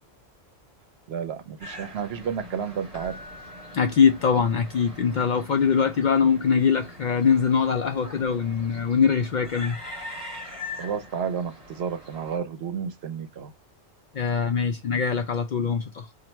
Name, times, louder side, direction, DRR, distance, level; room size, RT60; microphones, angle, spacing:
voice 1, 1.1-3.2 6.2-6.3 10.8-13.5, right 7 dB, 70° right, 0.8 m, -31 dB
sound 1, 1.6-12.4, left 2 dB, 30° right, 1.5 m, -42 dB
Keyboard (musical), 2.9-4.9 8.1-8.3, left 2 dB, 35° left, 1.2 m, -47 dB
voice 2, 3.7-9.8 14.1-16.1, left 6 dB, 60° left, 0.5 m, -22 dB
3.0 x 2.5 x 4.3 m
omnidirectional pair, 1.1 m